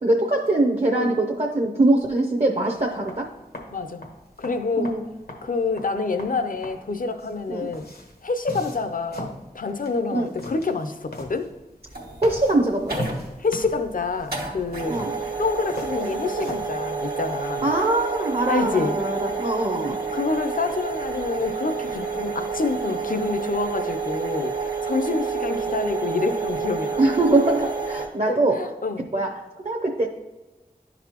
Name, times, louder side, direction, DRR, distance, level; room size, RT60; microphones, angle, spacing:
voice 1, 0.0-3.3 4.8-5.0 7.5-7.7 10.1-10.3 12.2-13.0 14.9-15.1 17.6-20.0 27.0-28.7 29.1-30.1, right 2 dB, 45° right, 2 dB, 0.6 m, -22 dB
sound 1, 2.7-16.6, left 1 dB, 90° left, 1.1 m, -40 dB
voice 2, 3.7-4.1 4.4-4.9 5.4-7.9 8.2-11.5 13.4-15.0 15.4-17.7 18.5-19.0 20.1-27.0 28.2-29.1, left 4 dB, 65° left, 8 dB, 0.5 m, -27 dB
sound 2, 11.8-28.1, right 5 dB, 80° right, 1.2 m, -29 dB
11.0 x 4.0 x 2.9 m, 1.2 s
wide cardioid pair, 40°, 15 cm